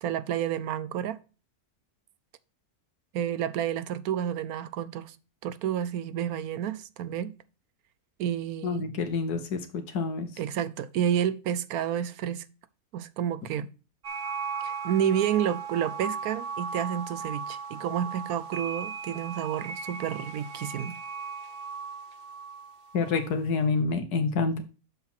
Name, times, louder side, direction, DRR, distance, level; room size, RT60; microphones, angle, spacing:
voice 1, 0.0-1.2 3.1-5.2 5.4-7.3 8.2-8.9 10.4-12.4 12.9-13.7 14.6-21.0, right 9 dB, 75° right, 1.1 m, -30 dB
voice 2, 8.6-10.3 22.9-24.6, left 4 dB, 85° left, 1.5 m, -28 dB
sound 1, 14.0-23.3, right 5 dB, 45° right, 0.9 m, -37 dB
7.0 x 5.8 x 4.4 m
omnidirectional pair, 1.6 m